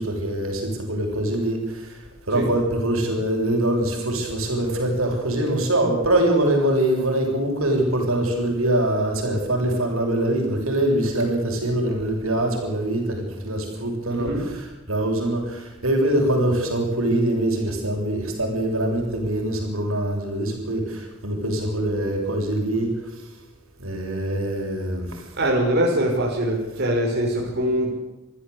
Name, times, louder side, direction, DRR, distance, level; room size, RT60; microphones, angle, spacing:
voice 1, 0.0-23.3 23.8-25.3, right 1 dB, 85° right, 2 dB, 7.1 m, -24 dB
voice 2, 14.1-14.4 25.4-27.9, right 1 dB, 55° right, -1 dB, 5.5 m, -23 dB
26.5 x 15.5 x 8.4 m, 0.99 s
head